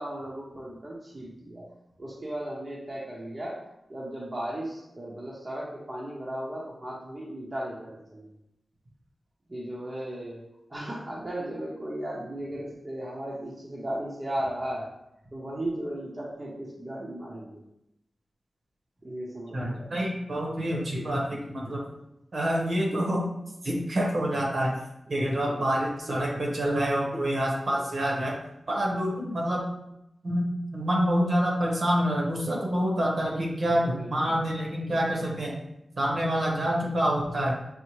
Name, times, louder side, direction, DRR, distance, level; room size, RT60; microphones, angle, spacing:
voice 1, 0.0-1.7 2.0-8.3 9.5-10.4 10.7-14.9 15.3-17.6 19.0-19.9 25.1-25.6 33.8-34.3, right 1 dB, 35° right, -5 dB, 0.8 m, -36 dB
voice 2, 19.5-21.8 22.3-23.3 23.6-24.8 25.1-28.3 28.7-29.6 30.2-30.5 30.7-35.6 36.0-37.6, equal, 60° right, -2 dB, 1.1 m, -27 dB
5.5 x 2.1 x 3.0 m, 0.83 s
wide cardioid pair, 75°, 0 cm